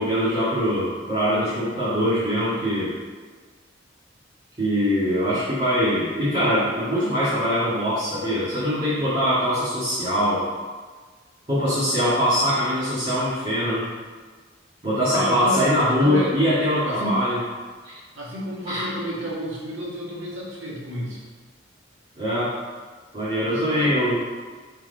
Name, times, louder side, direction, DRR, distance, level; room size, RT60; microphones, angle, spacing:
voice 1, 0.0-2.9 4.6-10.4 11.5-13.9 14.8-17.4 17.8-18.0 18.7-18.8 22.2-22.5 23.1-24.2, equal, 30° right, -12 dB, 2.2 m, -22 dB
voice 2, 15.1-16.3 16.8-17.2 18.2-21.2 23.4-24.1, equal, 80° right, -5 dB, 2.1 m, -31 dB
5.9 x 4.7 x 5.3 m, 1.5 s
head